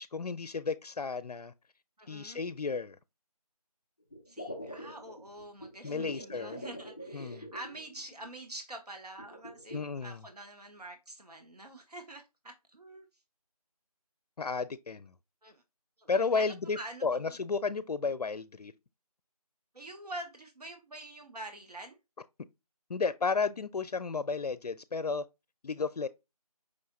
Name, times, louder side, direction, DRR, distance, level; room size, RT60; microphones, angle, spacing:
voice 1, 0.0-1.5 2.1-3.0 5.8-6.6 7.1-7.5 9.7-10.2 14.4-15.1 16.1-18.7 22.9-25.2 25.6-26.1, left 4 dB, 80° left, 0.4 m, -33 dB
voice 2, 2.0-2.4 4.3-13.1 15.4-15.6 16.0-17.4 19.7-22.0, right 1 dB, 85° right, 1.3 m, -46 dB
sound 1, 4.1-8.3 9.2-9.8, equal, 5° right, 1.3 m, -45 dB
5.4 x 3.2 x 2.5 m
figure-of-eight pair, 175°, 20 cm